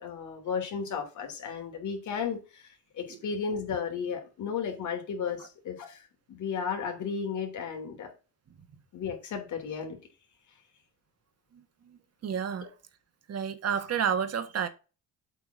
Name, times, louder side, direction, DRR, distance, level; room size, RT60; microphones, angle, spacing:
voice 1, 0.0-6.0 6.3-8.1 8.9-10.0, left 6 dB, 75° left, 3.2 m, -34 dB
voice 2, 11.5-12.7 13.3-14.7, right 7 dB, 55° right, 1.7 m, -31 dB
8.1 x 4.5 x 7.0 m
cardioid pair, 90°, 30 cm